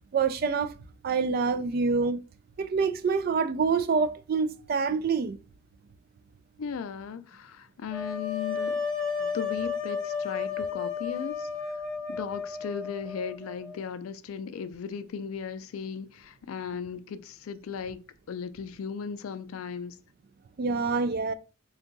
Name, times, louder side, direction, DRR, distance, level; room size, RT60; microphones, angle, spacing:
voice 1, 0.1-0.7 1.0-2.2 2.6-5.4 20.6-21.3, right 5 dB, 45° right, 0.3 m, -26 dB
voice 2, 6.6-8.8 9.2-11.8 12.1-20.0, left 6 dB, 75° left, 0.4 m, -37 dB
sound 1, 7.9-13.8, left 5 dB, 5° left, 0.6 m, -33 dB
3.7 x 2.3 x 3.8 m
head